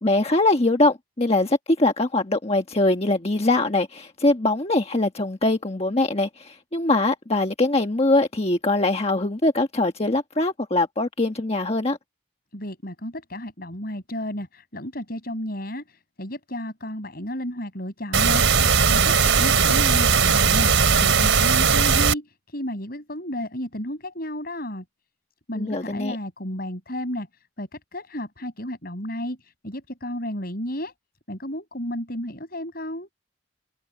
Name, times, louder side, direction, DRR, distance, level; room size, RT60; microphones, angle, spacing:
voice 1, 0.0-12.0 25.6-26.2, left 2 dB, 30° left, 1.3 m, -22 dB
voice 2, 12.5-24.8 25.5-30.9 31.3-33.1, left 1 dB, 50° left, 6.9 m, -33 dB
sound 1, 18.1-22.1, right 5 dB, 90° right, 3.3 m, -18 dB
head